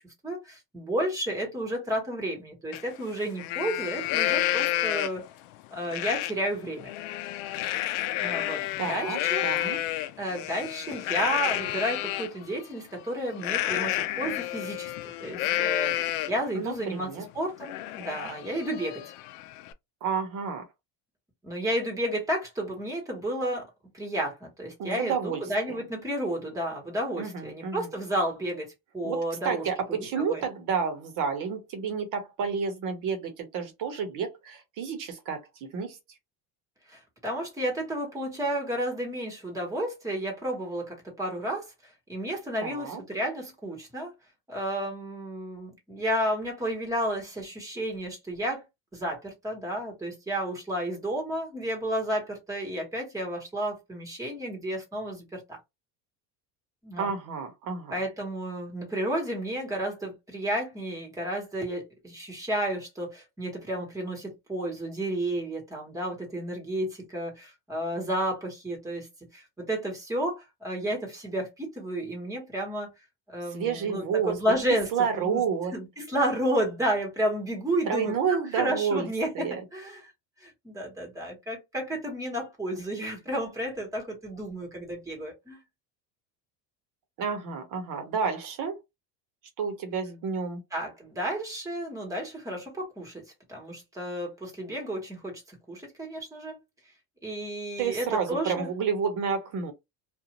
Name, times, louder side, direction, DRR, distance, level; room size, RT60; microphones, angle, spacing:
voice 1, 0.2-5.2 5.7-6.9 8.2-9.5 10.2-14.9 15.2-19.0 21.4-23.7 23.9-29.7 30.0-30.4 36.9-41.7 42.1-44.1 44.5-48.6 48.9-55.6 56.8-57.1 57.9-69.1 69.3-72.9 73.3-74.9 75.2-75.4 75.7-80.1 80.4-85.6 90.7-93.2 93.5-96.6 97.2-98.7, right 1 dB, 10° right, 1.2 m, -32 dB
Livestock farm animals working animals, 2.7-2.8 3.2-5.3 5.9-6.3 6.7-12.3 13.4-16.5 16.9-17.0 17.4-19.7, left 15 dB, 75° left, 0.5 m, -30 dB
voice 2, 8.8-9.8 16.5-17.2 20.0-20.6 24.8-25.4 25.7-25.8 27.2-27.9 29.0-36.0 42.6-43.0 57.0-58.0 73.5-74.4 74.9-75.7 77.9-79.1 79.3-79.6 87.2-88.7 89.6-90.6 97.8-99.7, right 6 dB, 50° right, 1.0 m, -30 dB
2.6 x 2.4 x 2.9 m
cardioid pair, 145°, 41 cm